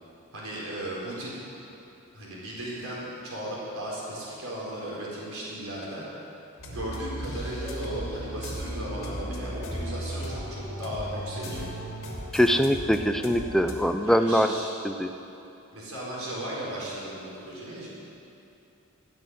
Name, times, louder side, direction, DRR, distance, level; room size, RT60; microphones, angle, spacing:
voice 1, 0.3-1.5 2.1-6.1 6.7-11.7 14.0-14.7 15.7-17.9, right 1 dB, 85° right, -6 dB, 4.3 m, -36 dB
sound 1, 6.6-13.7, equal, 80° left, 3.1 m, -36 dB
voice 2, 12.3-14.5 14.8-15.1, equal, ahead, 7 dB, 0.5 m, -23 dB
16.0 x 6.7 x 10.0 m, 2.8 s
head